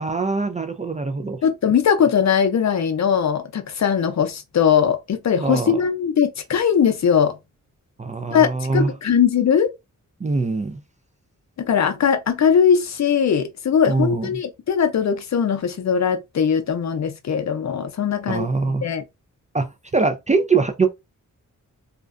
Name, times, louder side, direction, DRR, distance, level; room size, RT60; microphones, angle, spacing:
voice 1, 0.0-1.4 5.4-5.8 8.0-8.9 10.2-10.8 13.9-14.3 18.3-18.8 19.5-19.7 19.9-20.9, right 4 dB, 25° right, 0.3 m, -22 dB
voice 2, 1.4-7.3 8.3-9.7 11.6-19.0, left 7 dB, 55° left, 0.5 m, -20 dB
2.4 x 2.1 x 2.4 m
wide cardioid pair, 90°, 33 cm